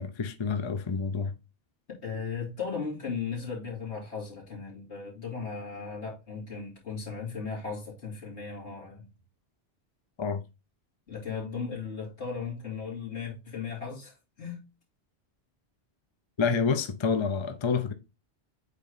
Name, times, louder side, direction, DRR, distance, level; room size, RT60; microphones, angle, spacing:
voice 1, 0.0-1.3 10.2-10.4 16.4-17.9, left 5 dB, 30° left, 0.6 m, -28 dB
voice 2, 2.0-9.0 11.1-14.6, left 5 dB, 85° left, 3.1 m, -36 dB
8.3 x 3.2 x 4.0 m
omnidirectional pair, 1.1 m